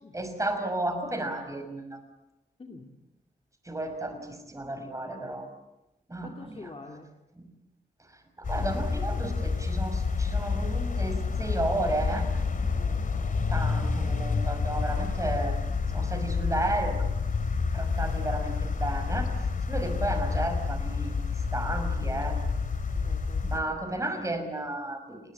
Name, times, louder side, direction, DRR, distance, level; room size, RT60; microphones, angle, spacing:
voice 1, 0.1-2.0 3.7-5.5 6.1-6.7 7.4-7.5 8.4-12.3 13.5-15.6 15.9-17.0 17.7-19.3 19.7-21.1 21.5-22.4 23.4-25.2, right 1 dB, 20° right, 6 dB, 5.9 m, -33 dB
voice 2, 2.6-2.9 6.2-7.1 12.7-13.1 22.9-23.8, left 3 dB, 35° left, 1 dB, 2.6 m, -47 dB
sound 1, 8.4-23.6, left 4 dB, 55° left, 2.9 m, -29 dB
29.0 x 20.5 x 8.5 m, 0.93 s
wide cardioid pair, 110°, 17 cm